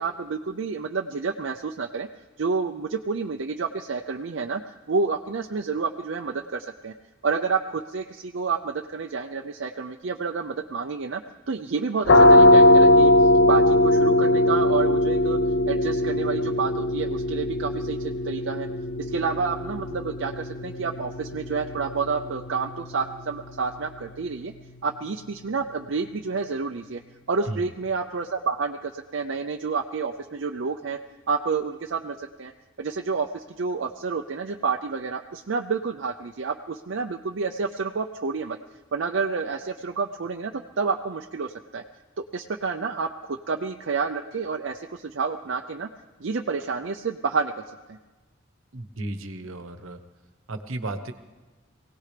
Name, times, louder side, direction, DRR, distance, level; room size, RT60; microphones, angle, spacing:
voice 1, 0.0-2.1 2.4-4.6 4.9-6.9 7.2-11.2 11.5-15.4 15.7-18.7 19.0-24.5 24.8-27.0 27.3-31.0 31.3-32.5 32.8-38.6 38.9-41.8 42.2-45.9 46.2-48.0, right 4 dB, 65° right, 4 dB, 0.5 m, -29 dB
sound 1, 12.1-23.6, left 1 dB, 55° left, 0.6 m, -20 dB
voice 2, 48.7-50.0 50.5-51.1, right 2 dB, 85° right, 9 dB, 1.1 m, -34 dB
24.0 x 17.5 x 3.4 m, 1.2 s
head